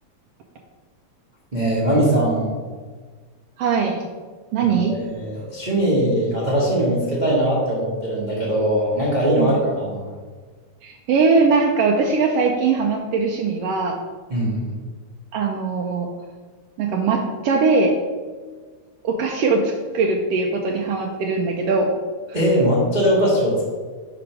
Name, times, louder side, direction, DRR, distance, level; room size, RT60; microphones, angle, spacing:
voice 1, 1.5-2.5 4.9-10.1 14.3-14.6 22.3-23.6, right 1 dB, 45° right, -6 dB, 0.5 m, -20 dB
voice 2, 3.6-4.0 4.5-4.9 9.4-9.5 10.8-14.0 15.3-16.1 16.8-17.9 19.0-21.9, right 4 dB, 80° right, 1 dB, 1.4 m, -20 dB
4.9 x 4.9 x 5.9 m, 1.5 s
omnidirectional pair, 3.3 m